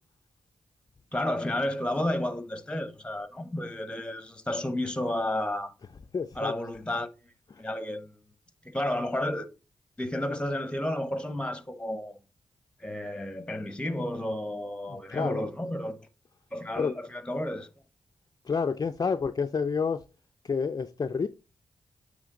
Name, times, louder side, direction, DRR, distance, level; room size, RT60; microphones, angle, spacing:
voice 1, 1.1-5.7 6.4-7.1 7.6-8.2 8.6-9.5 10.0-12.2 12.8-16.1 16.5-17.7, left 1 dB, 10° left, 1.0 m, -31 dB
voice 2, 6.1-6.5 7.5-7.6 14.9-15.5 16.8-16.9 18.4-20.1 20.4-21.3, left 5 dB, 40° left, 0.4 m, -29 dB
8.8 x 3.2 x 3.8 m
cardioid pair, 55°, 10 cm